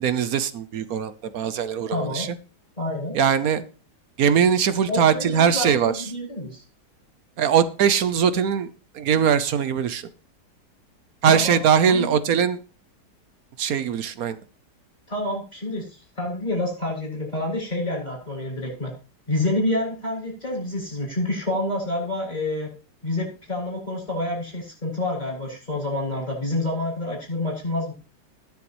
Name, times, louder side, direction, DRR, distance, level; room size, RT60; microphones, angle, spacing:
voice 1, 0.0-2.3 3.1-3.6 4.2-6.0 7.4-8.7 8.9-10.1 11.2-12.6 13.6-14.4, right 8 dB, 65° right, 13 dB, 1.2 m, -21 dB
voice 2, 1.9-2.3 2.8-3.2 4.9-6.6 11.2-12.2 15.1-18.9 19.3-22.7 23.0-27.9, left 1 dB, 25° left, -1 dB, 7.6 m, -28 dB
21.0 x 7.1 x 3.1 m, 0.35 s
omnidirectional pair, 1.8 m